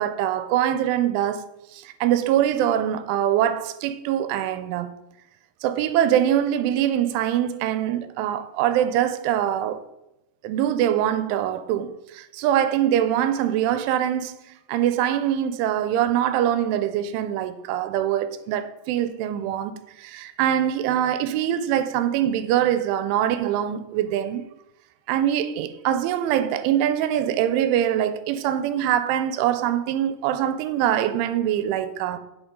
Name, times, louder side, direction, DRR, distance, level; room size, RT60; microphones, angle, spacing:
voice 1, 0.0-4.9 5.6-9.8 10.4-14.3 14.7-24.4 25.1-32.2, right 11 dB, 85° right, 3.1 m, -23 dB
9.5 x 7.7 x 5.2 m
omnidirectional pair, 5.4 m